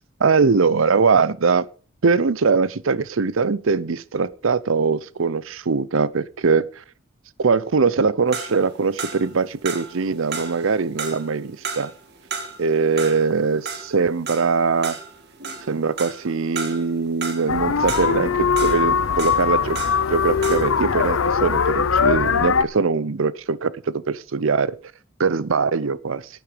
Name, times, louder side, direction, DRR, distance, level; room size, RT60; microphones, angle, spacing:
voice 1, 0.0-1.6 2.0-6.7 7.4-11.9 12.6-15.0 15.7-19.8 20.1-24.8 25.2-26.2, right 4 dB, 75° right, 0.6 m, -21 dB
sound 1, 8.3-20.2 20.4-20.8, right 5 dB, 50° right, 2.1 m, -34 dB
sound 2, 17.5-22.6, left 6 dB, 80° left, 0.7 m, -21 dB
11.0 x 9.2 x 5.1 m
head